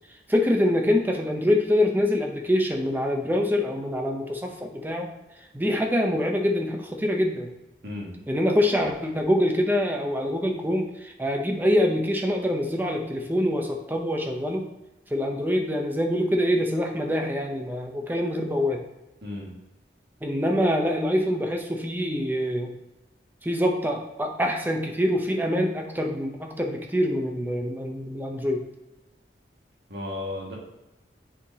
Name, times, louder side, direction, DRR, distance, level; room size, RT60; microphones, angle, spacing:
voice 1, 0.3-5.1 5.5-7.5 8.3-14.7 15.1-18.8 20.2-22.7 23.4-28.6, left 1 dB, 10° right, 3 dB, 0.6 m, -25 dB
voice 2, 19.2-19.5 29.9-30.5, left 2 dB, 65° right, -3 dB, 1.8 m, -34 dB
7.0 x 4.7 x 2.8 m, 0.97 s
head